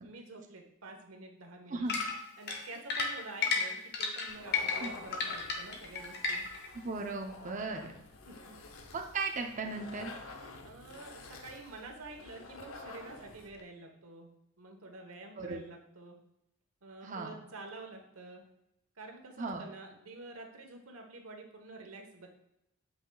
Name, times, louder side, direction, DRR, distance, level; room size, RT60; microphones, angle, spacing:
voice 1, 0.0-1.9 2.4-6.5 8.3-8.6 10.6-14.3 14.6-16.2 16.8-18.4 19.0-22.3, right 2 dB, 85° right, 3 dB, 1.2 m, -48 dB
sound 1, 1.9-6.7, left 4 dB, 50° left, 1.0 m, -33 dB
sound 2, 4.3-13.6, left 3 dB, 75° left, 0.8 m, -50 dB
voice 2, 6.7-7.9 8.9-10.1 15.4-15.6 17.0-17.4 19.4-19.6, right 3 dB, 35° right, 3 dB, 0.7 m, -36 dB
7.9 x 5.7 x 2.3 m, 0.84 s
head